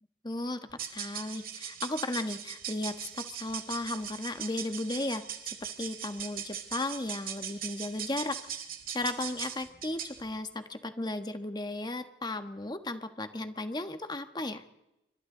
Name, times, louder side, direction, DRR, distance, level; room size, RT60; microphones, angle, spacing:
voice 1, 0.2-0.6 0.9-8.4 8.9-14.6, left 2 dB, 25° left, 8 dB, 1.4 m, -35 dB
Charrasca de metal o macanilla, 0.7-10.2, right 9 dB, 55° right, 2.2 m, -40 dB
28.5 x 25.5 x 3.9 m, 0.90 s
head